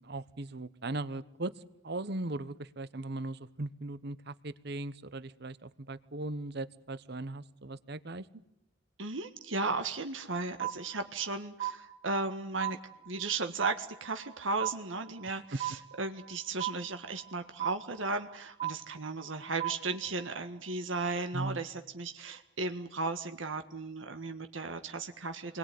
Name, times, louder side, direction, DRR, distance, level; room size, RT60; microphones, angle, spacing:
voice 1, 0.0-1.5 1.8-8.2 21.3-21.6, right 2 dB, 55° right, 16 dB, 1.0 m, -38 dB
voice 2, 9.0-12.8 13.0-25.6, right 3 dB, 75° right, 7 dB, 1.7 m, -35 dB
sound 1, 10.6-11.3 11.6-12.3 12.6-13.3 13.6-14.3 14.6-15.3 15.6-16.3 16.6-17.3 17.6-18.3 18.6-19.3 19.6-20.3, right 13 dB, 35° right, 2.0 m, -37 dB
29.0 x 21.5 x 9.5 m, 0.80 s
head